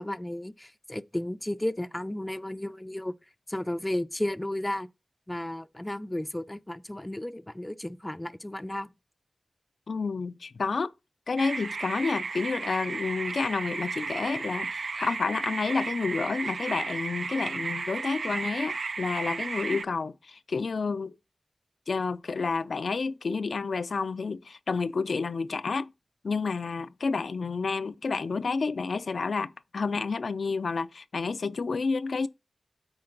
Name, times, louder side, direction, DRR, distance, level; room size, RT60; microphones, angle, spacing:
voice 1, 0.0-3.1 3.5-4.9 5.3-8.9, left 1 dB, 15° left, 0.4 m, -33 dB
voice 2, 9.9-10.9 11.3-21.2 21.9-25.9 26.2-32.3, left 4 dB, 85° left, 0.3 m, -30 dB
sound 1, 11.4-19.8, right 4 dB, 80° right, 0.3 m, -34 dB
8.7 x 4.7 x 3.8 m
wide cardioid pair, 80°, 0 cm